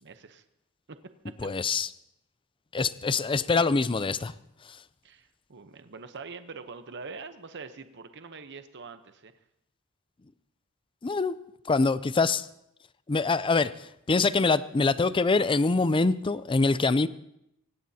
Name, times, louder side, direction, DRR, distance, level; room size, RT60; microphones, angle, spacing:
voice 1, 0.0-0.4 0.9-1.0 1.2-1.5 5.0-9.3, right 4 dB, 55° right, 9 dB, 0.9 m, -44 dB
voice 2, 1.4-1.9 2.7-4.3 4.6-4.8 11.0-11.3 11.7-12.5 13.1-17.1, left 3 dB, 25° left, 15 dB, 0.5 m, -24 dB
24.5 x 18.0 x 2.8 m, 0.80 s
head